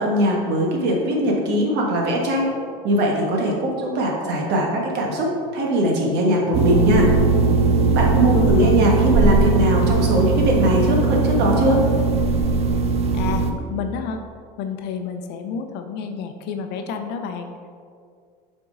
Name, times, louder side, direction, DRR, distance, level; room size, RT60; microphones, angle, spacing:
voice 1, 0.0-2.5 2.8-7.1 7.9-11.8, right 1 dB, 55° right, -1 dB, 1.6 m, -20 dB
sound 1, 6.5-13.5, right 3 dB, 30° right, 0.6 m, -19 dB
voice 2, 8.2-8.8 13.1-14.2 14.6-17.7, left 6 dB, 55° left, 6 dB, 0.7 m, -30 dB
6.8 x 4.5 x 3.9 m, 2.1 s
supercardioid pair, 105°, 20 cm